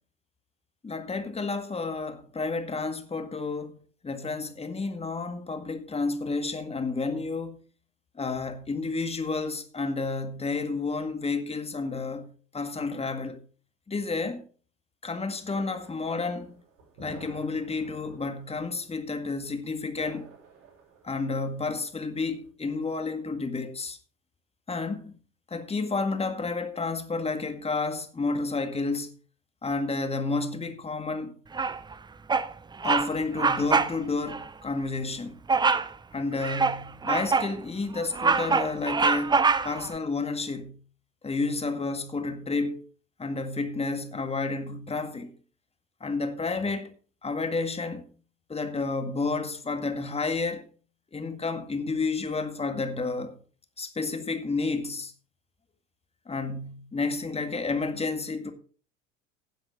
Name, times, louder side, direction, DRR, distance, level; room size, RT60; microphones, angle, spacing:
voice 1, 0.8-3.8 4.0-7.6 8.2-13.4 13.9-14.4 15.0-16.5 17.0-20.3 21.0-24.0 24.7-25.2 25.5-29.1 29.6-31.4 32.8-35.4 36.1-39.4 39.6-40.8 41.2-42.8 43.2-45.3 46.0-46.9 47.2-48.0 48.5-50.6 51.1-53.4 53.8-55.1 56.3-58.5, left 3 dB, 15° left, 1.9 m, -30 dB
sound 1, 15.4-22.5, right 3 dB, 60° right, 6.5 m, -51 dB
Bird vocalization bird call bird song, 31.5-31.9 32.3-32.5 32.8-33.1 33.4-34.0 34.3-34.4 35.5-35.9 36.4-37.5 38.0-39.9, right 4 dB, 10° right, 0.6 m, -24 dB
16.5 x 7.7 x 3.8 m
figure-of-eight pair, 75°, 38 cm